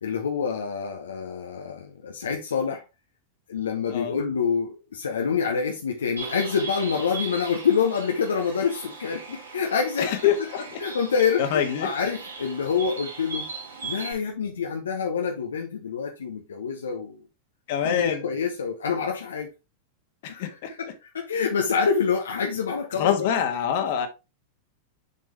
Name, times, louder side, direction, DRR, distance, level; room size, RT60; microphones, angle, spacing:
voice 1, 0.0-2.8 3.5-10.5 10.8-13.5 13.8-17.2 17.8-19.5 20.3-23.4, left 6 dB, 80° left, 1.0 m, -27 dB
Bird, 6.2-14.1, right 4 dB, 85° right, 2.5 m, -38 dB
voice 2, 10.0-10.6 11.5-11.9 17.7-18.2 20.2-20.7 23.0-24.1, left 9 dB, 55° left, 1.6 m, -25 dB
6.8 x 5.3 x 3.4 m
hypercardioid pair, 95°, 0 cm